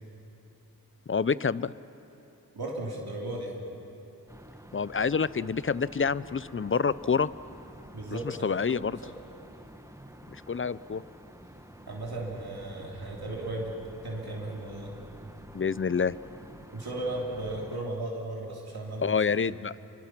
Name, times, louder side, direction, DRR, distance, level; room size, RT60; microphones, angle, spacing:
voice 1, 1.1-1.7 4.7-7.3 8.1-9.0 10.3-11.0 15.5-16.2 19.0-19.8, left 5 dB, 35° left, 18 dB, 0.5 m, -27 dB
voice 2, 2.5-3.5 7.9-8.5 9.0-9.1 11.9-13.7 14.0-14.9 16.7-19.4, right 2 dB, 80° right, -3 dB, 2.9 m, -35 dB
sound 1, 4.3-17.8, right 1 dB, 10° right, 1.4 m, -49 dB
27.5 x 24.0 x 6.0 m, 3.0 s
wide cardioid pair, 50°, 37 cm